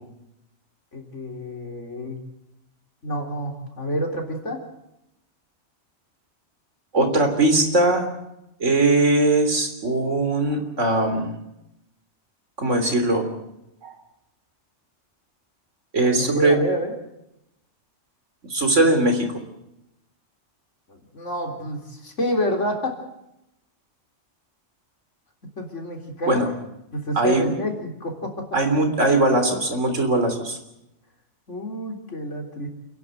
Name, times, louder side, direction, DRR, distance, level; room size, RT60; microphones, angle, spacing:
voice 1, 0.9-2.2 3.0-4.6 16.1-16.9 20.9-23.0 25.6-26.4 26.9-28.5 31.5-32.7, left 1 dB, 80° left, 3 dB, 4.0 m, -28 dB
voice 2, 6.9-8.1 8.6-11.3 12.6-13.3 13.8-13.9 15.9-16.6 18.5-19.3 26.3-26.5 27.2-27.5 28.5-30.6, right 2 dB, 85° right, 6 dB, 3.7 m, -20 dB
29.0 x 11.0 x 9.2 m, 0.85 s
omnidirectional pair, 1.2 m